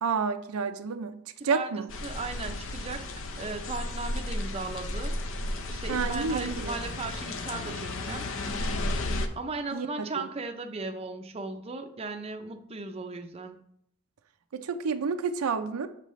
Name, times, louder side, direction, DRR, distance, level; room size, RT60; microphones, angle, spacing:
voice 1, 0.0-1.2 1.4-1.9 5.9-6.8 9.7-10.3 14.5-15.9, right 5 dB, 85° right, 9 dB, 0.5 m, -30 dB
sound 1, 1.9-9.3, left 2 dB, 65° left, 0.6 m, -33 dB
voice 2, 2.0-3.1 3.4-5.2 5.7-8.3 9.4-13.6, right 3 dB, 30° right, 5 dB, 0.5 m, -36 dB
7.3 x 5.4 x 3.1 m, 0.72 s
head